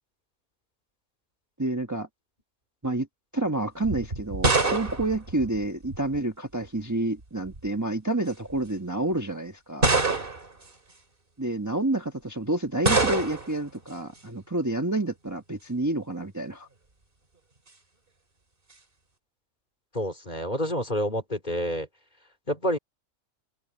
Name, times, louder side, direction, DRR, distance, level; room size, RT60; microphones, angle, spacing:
voice 1, 1.6-2.1 2.8-3.1 3.3-9.9 11.4-16.7, right 2 dB, 15° right, 1.2 m, -29 dB
sound 1, 3.8-6.2 7.2-7.7 8.5-8.6 9.8-10.6 12.8-13.6, right 3 dB, 45° right, 2.9 m, -25 dB
voice 2, 19.9-21.9 22.5-22.8, equal, 35° left, 3.4 m, -28 dB
open air
omnidirectional pair, 1.3 m